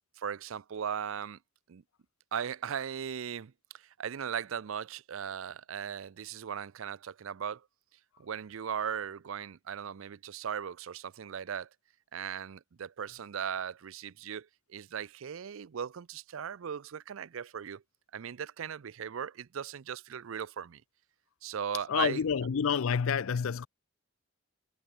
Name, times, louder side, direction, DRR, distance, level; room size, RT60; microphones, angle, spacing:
voice 1, 0.2-1.4 1.7-1.8 2.3-7.7 8.2-11.7 12.1-17.8 18.1-20.8 21.4-22.2, right 8 dB, 70° right, 0.4 m, -38 dB
voice 2, 21.9-23.7, left 6 dB, 75° left, 0.5 m, -28 dB
head